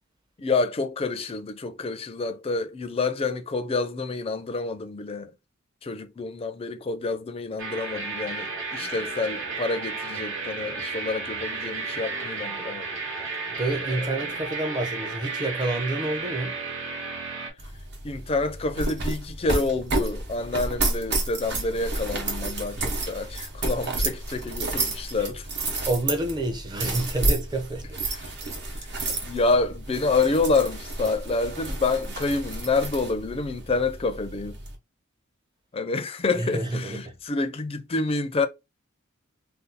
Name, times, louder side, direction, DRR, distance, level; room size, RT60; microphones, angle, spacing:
voice 1, 0.4-5.3 5.8-12.9 13.9-14.0 18.0-25.5 28.1-28.3 28.8-34.6 35.7-38.5, left 3 dB, 30° left, 0.4 m, -28 dB
sound 1, 7.6-17.5, right 4 dB, 80° right, 1.2 m, -33 dB
voice 2, 13.5-16.6 25.2-25.3 25.8-27.9 36.3-37.1, right 2 dB, 20° right, 0.6 m, -28 dB
sound 2, 17.6-34.7, right 2 dB, 60° right, 0.9 m, -31 dB
2.7 x 2.3 x 3.8 m
head